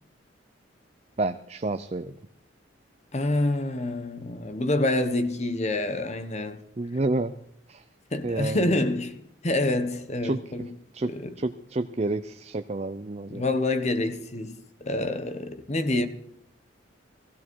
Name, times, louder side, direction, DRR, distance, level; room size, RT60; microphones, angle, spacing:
voice 1, 1.2-2.2 6.8-7.3 7.7-7.8 8.2-8.7 10.2-11.1 11.4-13.4, right 2 dB, 35° right, 0.5 m, -30 dB
voice 2, 3.1-6.6 8.1-9.2 9.4-10.7 11.1-11.3 13.3-16.1, left 2 dB, 35° left, 1.0 m, -27 dB
16.5 x 15.5 x 4.6 m
head